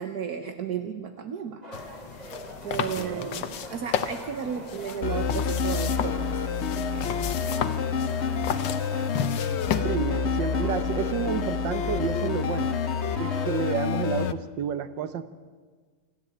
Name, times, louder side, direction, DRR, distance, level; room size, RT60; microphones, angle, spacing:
voice 1, 0.0-1.6 2.6-7.0 8.9-9.1, right 7 dB, 60° right, 8 dB, 1.4 m, -34 dB
sound 1, 1.6-13.8, right 1 dB, 20° right, 2.4 m, -43 dB
sound 2, 1.7-9.8, left 8 dB, 85° left, 1.7 m, -33 dB
voice 2, 2.8-3.3 9.8-12.7 13.2-15.3, right 7 dB, 85° right, 12 dB, 1.7 m, -30 dB
sound 3, 5.0-14.3, left 6 dB, 55° left, 0.7 m, -28 dB
27.5 x 12.5 x 8.8 m, 1.5 s
omnidirectional pair, 1.9 m